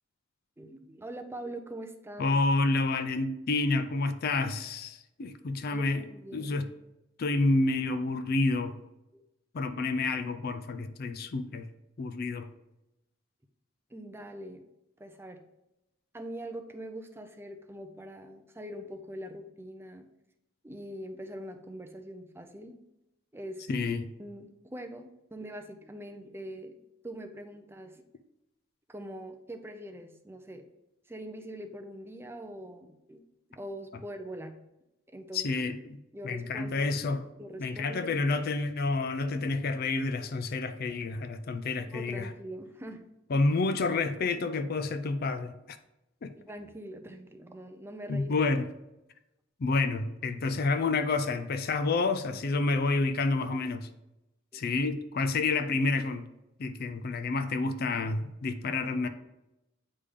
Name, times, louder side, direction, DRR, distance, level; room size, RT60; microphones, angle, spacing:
voice 1, 0.6-2.4 5.7-6.7 9.1-9.2 13.9-14.6 15.0-15.4 16.1-20.1 20.6-22.8 23.3-23.7 24.2-28.1 28.9-30.6 31.1-34.6 35.1-35.5 36.1-36.9 37.4-38.2 41.9-43.1 46.5-48.4 53.5-53.7 54.5-54.6, right 1 dB, 10° right, 0.5 m, -43 dB
voice 2, 2.2-6.0 6.3-6.7 7.2-8.8 9.5-11.7 12.0-12.5 23.7-24.1 35.3-36.0 36.2-37.2 37.6-42.3 43.3-45.8 46.2-46.3 48.1-48.7 49.6-53.9 54.5-56.3 56.6-59.1, left 3 dB, 50° left, 0.4 m, -29 dB
8.3 x 3.3 x 3.6 m
head